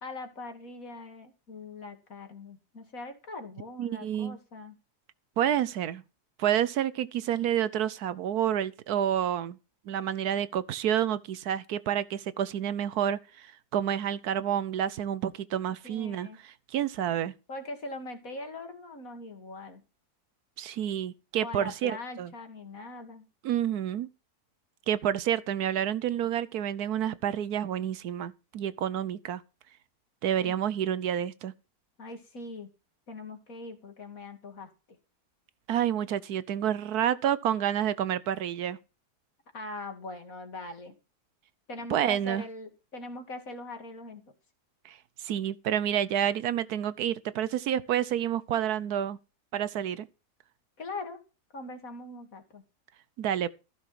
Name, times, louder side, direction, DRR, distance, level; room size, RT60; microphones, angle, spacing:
voice 1, 0.0-4.7 15.8-16.4 17.5-19.8 21.4-23.3 30.4-30.6 32.0-32.7 33.1-35.0 39.5-40.9 41.7-44.2 50.8-51.2 51.5-52.6, left 2 dB, 60° left, 2.8 m, -41 dB
voice 2, 3.8-4.4 5.4-6.0 6.4-9.6 9.9-17.3 20.6-22.3 23.4-24.1 24.9-29.4 30.2-31.5 35.7-38.8 41.9-42.4 44.8-49.2 49.5-50.1 53.2-53.5, right 10 dB, 75° right, 1.3 m, -29 dB
15.0 x 6.1 x 5.8 m
omnidirectional pair, 1.7 m